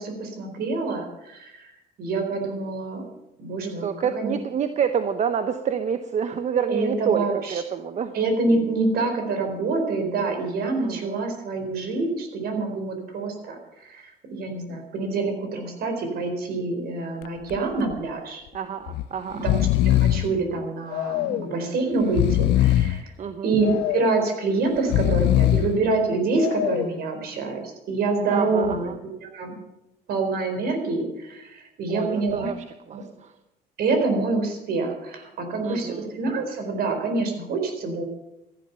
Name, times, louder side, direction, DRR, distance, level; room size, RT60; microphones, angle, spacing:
voice 1, 0.0-1.7 2.0-3.0 3.4-4.4 6.7-7.6 8.1-18.4 19.4-19.6 19.8-23.1 23.4-29.6 30.1-32.5 32.9-33.0 33.8-38.0, right 3 dB, 65° right, 5 dB, 4.3 m, -26 dB
voice 2, 3.8-8.1 10.8-11.3 18.5-19.6 23.2-23.5 28.3-28.9 31.9-32.5 32.9-33.3 35.6-36.1, right 7 dB, 45° right, 9 dB, 0.9 m, -28 dB
Breathing, 17.2-17.6 17.9-18.0 18.9-19.1 19.3-20.3 20.9-21.5 22.0-23.0 23.6-24.2 24.8-25.8 26.4-27.0, left 14 dB, 80° left, 0.6 m, -22 dB
14.5 x 11.0 x 6.9 m, 0.93 s
cardioid pair, 110°, 17 cm